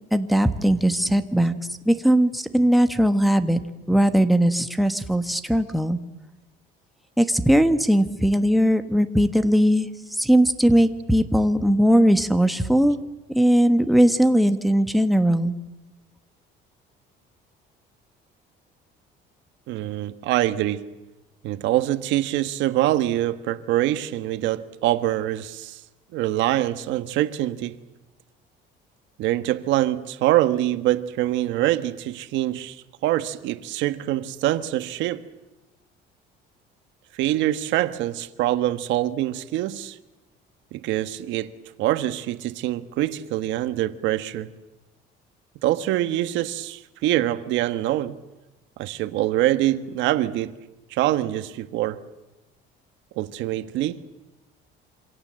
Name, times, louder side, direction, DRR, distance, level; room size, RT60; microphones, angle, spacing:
voice 1, 0.1-1.5 1.9-3.6 3.9-6.0 7.2-9.9 10.2-13.0 13.3-15.5, equal, ahead, 1.3 m, -19 dB
voice 2, 19.7-20.9 21.4-25.8 26.1-27.8 29.2-35.2 37.1-40.0 40.7-41.5 41.8-44.5 45.6-48.2 48.8-50.6 50.9-52.0 53.2-54.0, right 14 dB, 75° right, 1.4 m, -24 dB
27.0 x 26.0 x 7.7 m
cardioid pair, 160°, 19 cm